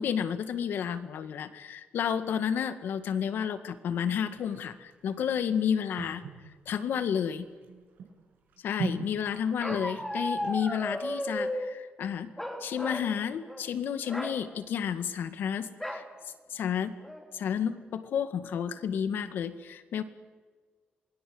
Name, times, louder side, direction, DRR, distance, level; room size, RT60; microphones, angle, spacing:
voice 1, 0.0-6.2 6.7-7.5 8.6-12.3 12.6-16.0 16.5-17.0 17.3-20.0, left 8 dB, 80° left, 10 dB, 2.0 m, -31 dB
sound 1, 4.3-11.3, right 6 dB, 80° right, 6.6 m, -42 dB
Bark, 9.6-11.7 12.4-13.1 13.4-13.7 14.0-14.4 15.8-16.1 16.6-16.7 17.0-17.5, left 1 dB, 5° left, 3.9 m, -34 dB
27.5 x 21.0 x 8.0 m, 1.5 s
cardioid pair, 115°, 3 cm